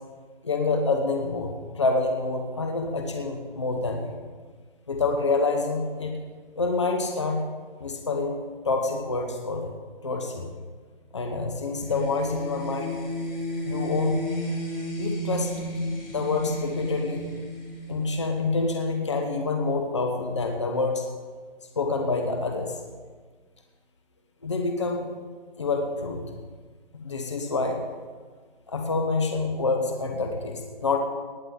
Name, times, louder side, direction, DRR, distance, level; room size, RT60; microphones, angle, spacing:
voice 1, 0.4-4.1 4.9-6.2 6.6-7.4 7.8-9.7 10.0-10.5 11.1-13.0 13.6-14.2 15.0-15.7 16.1-17.2 17.9-21.0 21.8-22.7 24.4-25.0 25.6-26.2 26.9-27.8 28.7-31.0, left 3 dB, 30° left, 3 dB, 0.9 m, -27 dB
sound 1, 11.8-18.5, equal, 75° left, 4.3 m, -32 dB
18.5 x 9.4 x 3.8 m, 1.5 s
figure-of-eight pair, 170°, 29 cm